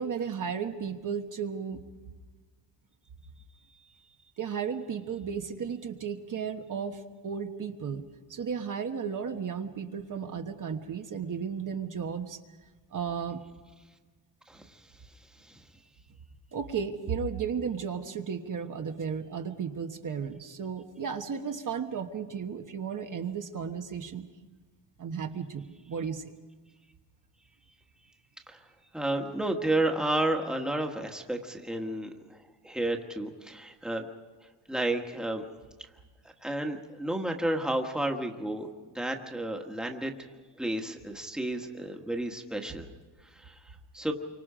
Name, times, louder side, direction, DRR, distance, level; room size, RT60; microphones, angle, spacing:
voice 1, 0.0-1.8 4.4-12.4 12.9-13.4 16.5-24.3 25.0-26.3, right 6 dB, 45° right, 5 dB, 1.3 m, -34 dB
voice 2, 14.5-14.8 15.5-15.6 28.5-28.6 28.9-32.4 32.6-34.0 34.7-35.4 36.4-38.7 38.9-40.3 40.6-42.9 43.3-44.1, right 1 dB, ahead, 3 dB, 1.5 m, -31 dB
28.5 x 25.0 x 5.0 m, 1.3 s
wide cardioid pair, 150°, 44 cm